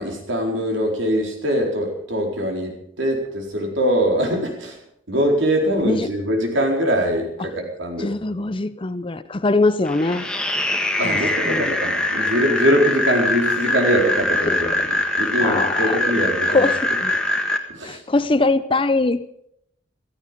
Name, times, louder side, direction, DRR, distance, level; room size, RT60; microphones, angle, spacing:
voice 1, 0.0-4.8 5.1-8.1 11.0-16.7 17.7-18.0, equal, 70° right, 2 dB, 4.3 m, -22 dB
voice 2, 8.0-10.3 11.0-11.2 11.5-11.7 14.5-14.7 15.4-16.0 16.5-17.1 17.8-19.2, left 2 dB, 25° left, 14 dB, 0.6 m, -22 dB
sound 1, 9.9-17.6, left 1 dB, 5° left, 1.5 m, -23 dB
16.0 x 14.5 x 5.2 m, 0.72 s
head